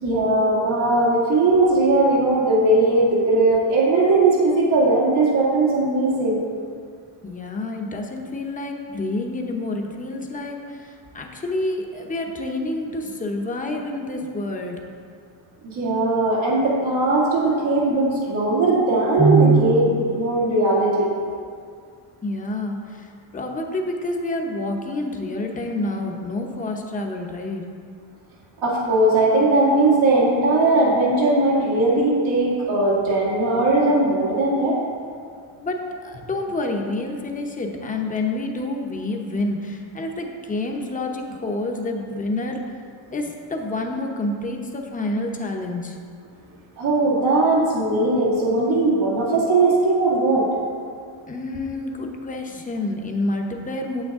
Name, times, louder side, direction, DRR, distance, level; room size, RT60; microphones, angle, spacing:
voice 1, 0.0-6.4 15.6-21.1 28.6-34.8 46.8-50.5, right 2 dB, 85° right, -7 dB, 2.4 m, -19 dB
voice 2, 7.2-14.8 22.2-27.6 35.6-42.6 43.1-46.0 51.3-54.0, left 2 dB, 15° left, 2 dB, 0.7 m, -28 dB
8.9 x 8.0 x 3.6 m, 2.2 s
cardioid pair, 170°, 46 cm